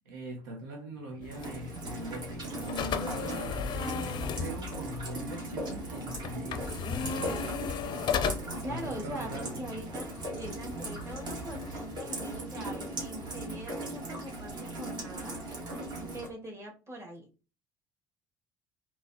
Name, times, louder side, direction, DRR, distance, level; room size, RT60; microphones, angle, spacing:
voice 1, 0.0-9.6, right 1 dB, 75° right, 0.7 m, -42 dB
sound 1, 1.2-12.0, left 6 dB, 45° left, 0.5 m, -37 dB
Rain, 1.3-16.3, right 1 dB, 45° right, 1.5 m, -39 dB
voice 2, 8.6-15.4 16.0-17.3, right 1 dB, 25° right, 1.7 m, -42 dB
3.9 x 2.9 x 2.7 m
figure-of-eight pair, 55°, 11 cm